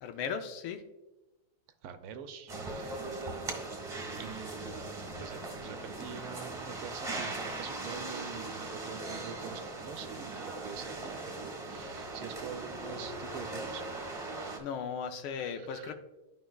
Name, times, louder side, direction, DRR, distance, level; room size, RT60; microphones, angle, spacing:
voice 1, 0.0-0.8 14.6-15.9, left 6 dB, 75° left, 7 dB, 1.5 m, -37 dB
voice 2, 1.8-3.2 4.1-13.8 15.3-15.9, right 7 dB, 85° right, 8 dB, 1.6 m, -46 dB
sound 1, 2.5-14.6, right 2 dB, 20° right, 1.0 m, -39 dB
12.5 x 5.2 x 2.3 m, 1.0 s
omnidirectional pair, 2.4 m